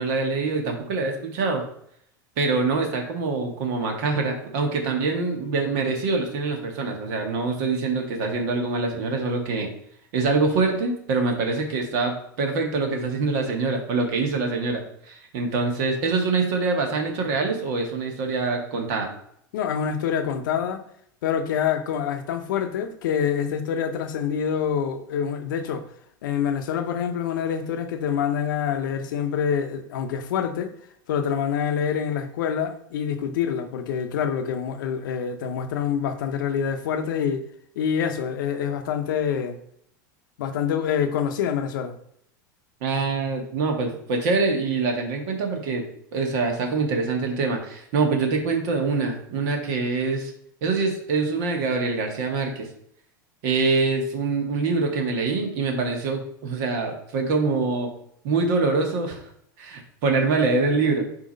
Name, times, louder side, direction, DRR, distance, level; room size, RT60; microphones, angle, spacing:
voice 1, 0.0-1.6 2.4-9.7 10.1-19.1 42.8-45.9 46.1-50.3 50.6-52.7 53.4-57.9 58.2-59.2 59.6-61.0, right 3 dB, 65° right, 1.6 m, -24 dB
voice 2, 19.5-20.8 21.2-25.9 26.2-30.7 31.1-37.4 37.8-39.6 40.4-42.0, left 8 dB, 80° left, 0.8 m, -26 dB
8.0 x 3.0 x 5.2 m
supercardioid pair, 115°, 11 cm